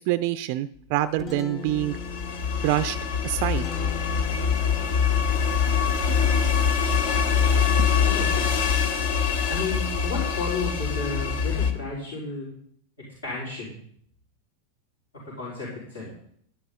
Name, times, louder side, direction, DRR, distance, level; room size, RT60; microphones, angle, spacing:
voice 1, 0.0-2.0 2.6-3.0 3.2-3.7 7.8-7.9, right 14 dB, 45° right, 14 dB, 0.4 m, -26 dB
Guitar, 0.7-10.5, left 5 dB, 30° left, 1.2 m, -42 dB
sound 1, 1.7-11.7, left 6 dB, 55° left, 1.2 m, -24 dB
voice 2, 8.0-8.5 9.5-12.5 13.2-13.8 15.2-16.1, left 3 dB, 70° left, -8 dB, 4.5 m, -33 dB
11.5 x 11.0 x 3.8 m, 0.66 s
figure-of-eight pair, 90°, 0 cm